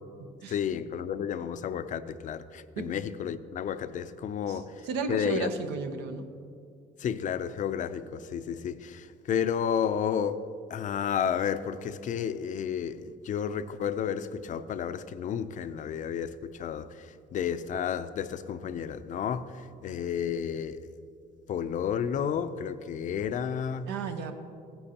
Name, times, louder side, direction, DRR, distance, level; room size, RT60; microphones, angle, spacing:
voice 1, 0.5-5.5 7.0-10.4 10.7-20.9 21.5-23.9, left 8 dB, 50° left, 0.5 m, -32 dB
voice 2, 4.8-6.3 23.9-24.3, right 5 dB, 90° right, 0.9 m, -33 dB
15.0 x 10.0 x 2.9 m
cardioid pair, 110°, 17 cm